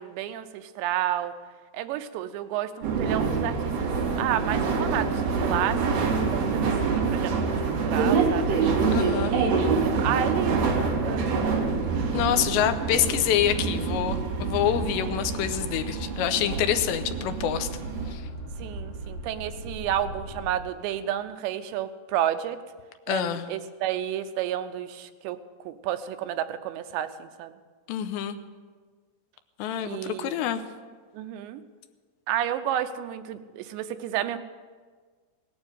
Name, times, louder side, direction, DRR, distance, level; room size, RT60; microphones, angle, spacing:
voice 1, 0.0-1.3 1.7-3.9 4.2-6.0 6.3-7.5 7.8-8.5 9.2-12.0 18.6-22.6 23.1-25.4 25.7-27.5 29.8-30.4 31.1-31.6 32.3-34.4, right 11 dB, 90° right, 9 dB, 3.0 m, -31 dB
sound 1, 2.8-18.1, right 4 dB, 65° right, 4.0 m, -26 dB
voice 2, 8.9-9.3 12.1-17.7 18.1-18.2 23.1-23.5 27.9-28.4 29.6-30.6, left 10 dB, 85° left, 9 dB, 3.0 m, -26 dB
sound 2, 9.3-20.7, right 2 dB, 65° left, 4.8 m, -40 dB
18.5 x 9.4 x 8.0 m, 1.5 s
omnidirectional pair, 5.0 m